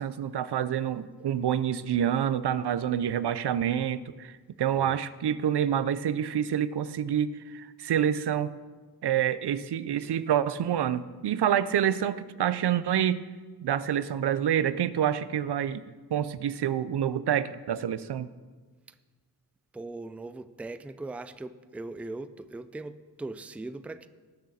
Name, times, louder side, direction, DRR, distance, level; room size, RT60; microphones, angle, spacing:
voice 1, 0.0-4.3 4.6-8.5 9.0-13.2 13.6-15.8 16.1-18.3, right 9 dB, 85° right, 15 dB, 0.5 m, -27 dB
voice 2, 19.7-24.1, right 2 dB, 5° right, 12 dB, 0.3 m, -40 dB
19.0 x 6.4 x 4.1 m, 1.4 s
wide cardioid pair, 130°, 40 cm